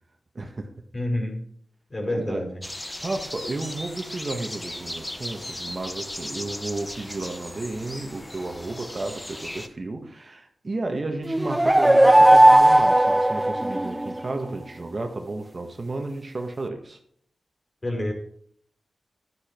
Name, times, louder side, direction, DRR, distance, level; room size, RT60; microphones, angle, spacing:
voice 1, 0.4-0.7 2.1-2.4 3.0-17.0, right 2 dB, 45° right, 5 dB, 1.8 m, -33 dB
voice 2, 0.9-1.4 1.9-2.6 17.8-18.1, left 1 dB, 40° left, 1 dB, 5.4 m, -28 dB
sound 1, 2.6-9.7, left 1 dB, 15° left, 1.2 m, -37 dB
sound 2, 11.3-14.2, right 1 dB, 15° right, 0.4 m, -16 dB
12.0 x 10.0 x 4.6 m, 0.63 s
cardioid pair, 55°, 0 cm